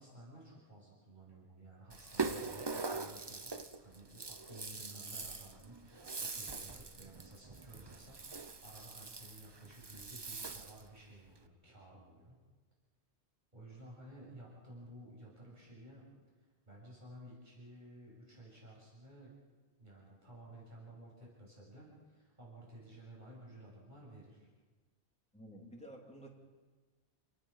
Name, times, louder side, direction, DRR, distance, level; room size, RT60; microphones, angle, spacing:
voice 1, 0.0-3.5 3.8-12.4 13.5-16.1 16.4-19.3 19.8-24.5, right 1 dB, 40° right, -5 dB, 7.4 m, -54 dB
Rattle (instrument), 1.9-10.9, right 4 dB, 25° right, 0.8 m, -43 dB
voice 2, 25.3-26.3, right 1 dB, 5° left, 0 dB, 2.9 m, -51 dB
28.5 x 19.5 x 5.7 m, 1.4 s
omnidirectional pair, 1.2 m